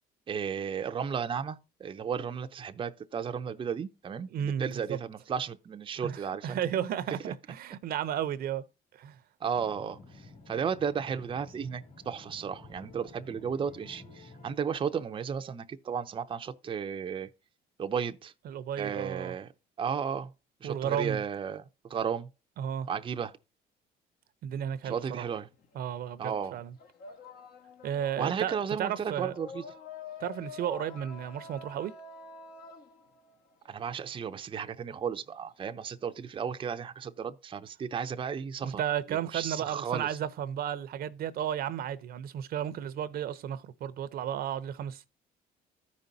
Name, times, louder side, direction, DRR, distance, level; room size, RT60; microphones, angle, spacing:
voice 1, 0.3-6.6 9.4-17.3 17.8-18.3 18.8-19.5 19.8-20.3 20.6-22.3 22.9-23.3 24.9-25.5 26.2-26.6 28.2-29.6 33.7-38.8 39.1-40.2, right 7 dB, 30° right, 0.6 m, -34 dB
voice 2, 4.3-5.0 6.0-8.7 8.9-9.2 18.4-19.3 20.6-21.2 22.6-22.9 24.4-25.2 25.7-26.7 27.8-29.4 30.2-31.9 38.6-45.1, right 9 dB, 65° right, 0.7 m, -33 dB
sound 1, 9.5-14.6, left 3 dB, 45° left, 2.5 m, -51 dB
sound 2, 24.8-26.0 26.3-34.1, left 5 dB, 65° left, 1.4 m, -48 dB
14.0 x 5.3 x 2.7 m
cardioid pair, 110°, 17 cm